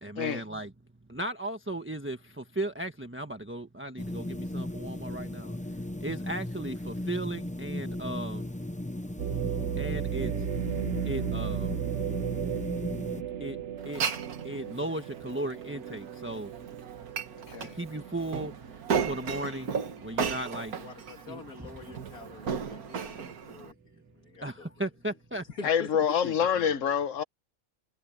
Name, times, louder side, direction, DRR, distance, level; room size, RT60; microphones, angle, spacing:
voice 1, 0.0-0.7 1.1-5.6 6.0-8.5 9.8-10.5 11.0-11.7 13.4-13.6 13.8-14.1 14.4-16.5 17.6-18.5 19.0-20.8 21.3-21.4 24.4-25.5, right 1 dB, 10° right, 1.3 m, -36 dB
sound 1, 4.0-13.2, left 1 dB, 10° left, 0.3 m, -36 dB
sound 2, 9.2-19.1 19.6-19.7 20.4-20.7, right 9 dB, 60° right, 1.0 m, -35 dB
Glass, 13.8-23.7, right 6 dB, 90° right, 2.0 m, -35 dB
voice 2, 20.7-24.8 25.5-25.9, left 4 dB, 90° left, 2.7 m, -46 dB
voice 3, 25.6-27.2, left 8 dB, 60° left, 1.4 m, -26 dB
omnidirectional pair, 1.5 m